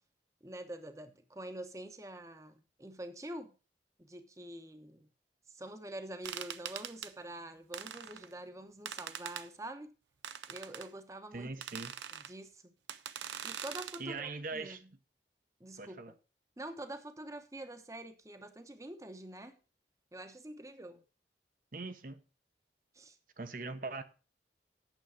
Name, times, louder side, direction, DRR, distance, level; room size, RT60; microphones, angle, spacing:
voice 1, 0.4-3.5 4.0-5.1 5.5-9.9 10.5-11.5 12.1-12.7 13.4-14.9 15.6-16.1 16.6-19.6 20.1-21.0 22.9-23.2, right 1 dB, 20° right, 0.9 m, -46 dB
sound 1, 6.2-7.1 7.7-8.3 8.9-9.5 10.2-10.9 11.6-12.3 12.9-14.0, right 9 dB, 80° right, 0.6 m, -43 dB
voice 2, 11.3-11.9 14.0-14.8 15.8-16.1 21.7-22.2 23.4-24.0, right 3 dB, 50° right, 0.9 m, -41 dB
9.1 x 7.1 x 5.0 m
head